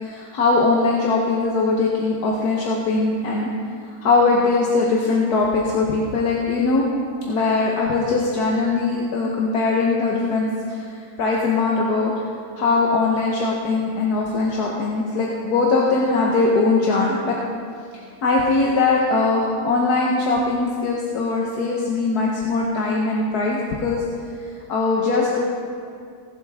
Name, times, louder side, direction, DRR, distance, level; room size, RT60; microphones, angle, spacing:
voice 1, 0.0-3.5 4.0-6.9 7.3-10.8 11.2-12.1 12.6-17.4 18.2-24.0 24.7-25.4, left 3 dB, 70° left, -3 dB, 1.6 m, -21 dB
20.0 x 7.6 x 3.6 m, 2.3 s
omnidirectional pair, 1.8 m